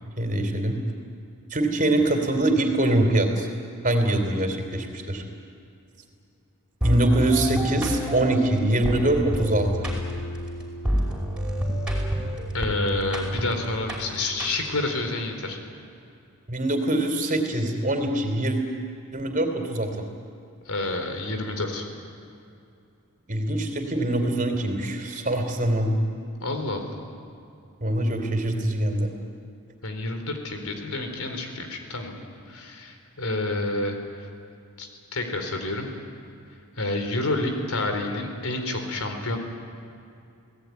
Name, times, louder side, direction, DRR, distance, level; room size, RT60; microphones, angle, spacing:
voice 1, 0.0-0.8 1.5-3.5 3.8-5.2 6.8-9.9 16.5-18.6 19.1-19.9 23.3-26.0 27.8-29.1, right 1 dB, 40° right, 5 dB, 3.4 m, -23 dB
sound 1, 6.8-14.9, equal, 5° right, 5.1 m, -29 dB
voice 2, 12.5-15.6 20.7-21.8 26.4-27.0 29.8-32.2 32.5-34.0 34.8-35.9 36.8-39.4, left 2 dB, 80° left, 5 dB, 4.0 m, -29 dB
30.0 x 18.5 x 9.6 m, 2.5 s
head